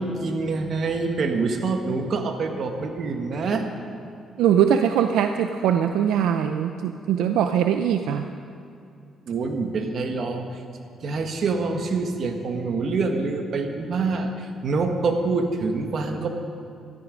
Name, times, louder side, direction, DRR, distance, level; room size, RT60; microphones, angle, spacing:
voice 1, 0.0-3.7 9.3-10.4 11.0-14.3 14.6-16.3, right 4 dB, 55° right, 5 dB, 1.5 m, -26 dB
voice 2, 4.4-8.2, right 9 dB, 85° right, 6 dB, 0.5 m, -21 dB
13.0 x 13.0 x 5.2 m, 2.5 s
cardioid pair, 90°, 0 cm